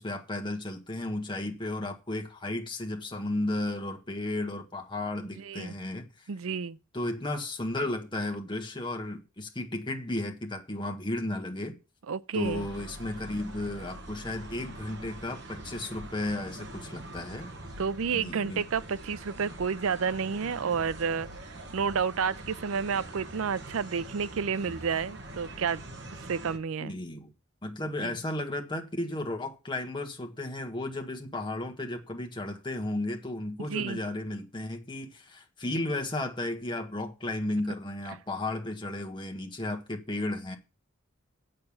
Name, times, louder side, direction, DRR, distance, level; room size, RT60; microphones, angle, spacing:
voice 1, 0.0-6.3 6.9-11.8 12.3-17.5 18.1-18.6 26.8-27.3 27.6-40.6, left 1 dB, 20° left, 1.5 m, -34 dB
voice 2, 5.3-5.7 6.3-6.8 12.1-12.7 17.8-25.8 26.1-26.9 28.0-28.1 33.7-34.0, right 6 dB, 80° right, 0.5 m, -30 dB
sound 1, 12.4-26.6, right 1 dB, 55° right, 1.5 m, -44 dB
7.8 x 6.7 x 7.1 m
head